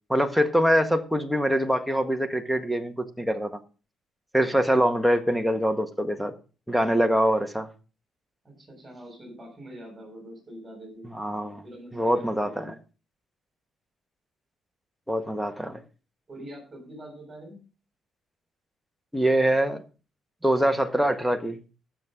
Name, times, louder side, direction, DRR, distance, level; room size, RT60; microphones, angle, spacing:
voice 1, 0.1-3.6 4.3-6.3 6.7-7.7 11.2-11.6 11.9-12.7 15.1-15.8 19.1-19.8 20.4-21.6, equal, ahead, 9 dB, 1.6 m, -24 dB
voice 2, 8.4-11.1 11.6-12.7 16.3-17.6, right 1 dB, 20° right, 2 dB, 7.4 m, -44 dB
18.5 x 7.6 x 3.8 m, 0.34 s
cardioid pair, 110°, 0 cm